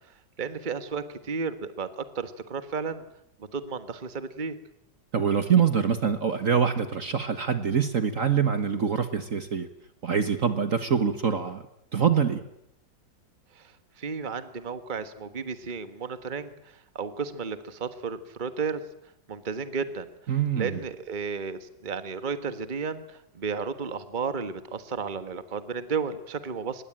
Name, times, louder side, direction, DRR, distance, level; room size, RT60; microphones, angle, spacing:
voice 1, 0.1-3.0 3.4-4.6 13.5-18.8 19.3-20.1 20.6-26.8, right 5 dB, 30° right, 11 dB, 1.5 m, -33 dB
voice 2, 5.1-9.7 10.0-11.7 11.9-12.4 20.3-20.8, right 7 dB, 50° right, 10 dB, 1.6 m, -24 dB
25.0 x 21.0 x 9.0 m, 0.80 s
omnidirectional pair, 2.0 m